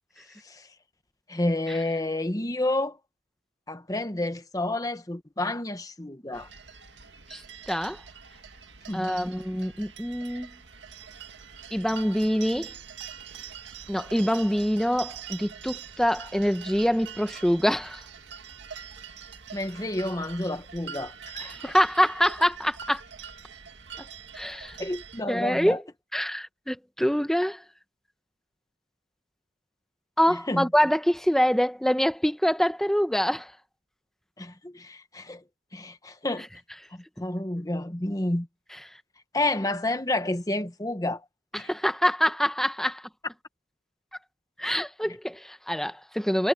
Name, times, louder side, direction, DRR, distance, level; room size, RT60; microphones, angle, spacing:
voice 1, 1.3-3.0 3.7-6.5 8.9-9.2 19.5-21.7 24.8-25.8 30.3-30.7 34.4-35.4 35.7-36.5 36.9-38.5 39.3-41.2 41.5-41.7, left 1 dB, 20° left, 1.2 m, -30 dB
sound 1, 6.3-25.2, right 7 dB, 85° right, 2.1 m, -44 dB
voice 2, 7.3-8.0 8.9-10.5 11.7-12.7 13.9-18.0 21.6-23.0 24.3-24.8 25.3-25.8 26.1-27.6 30.2-33.5 41.5-43.0 44.6-46.5, equal, ahead, 0.9 m, -25 dB
head